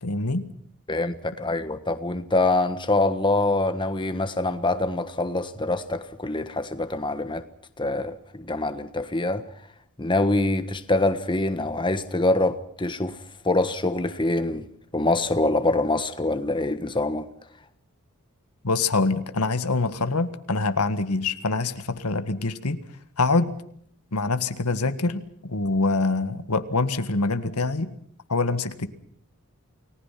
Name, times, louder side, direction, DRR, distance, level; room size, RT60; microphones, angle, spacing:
voice 1, 0.0-0.5 18.6-22.8 23.2-23.5 24.1-27.9 28.3-28.9, left 3 dB, 85° left, 10 dB, 1.8 m, -25 dB
voice 2, 0.9-7.4 7.8-9.4 10.0-13.2 13.4-14.6 14.9-17.2, left 2 dB, 20° left, 9 dB, 1.4 m, -25 dB
29.5 x 19.5 x 5.9 m, 0.66 s
head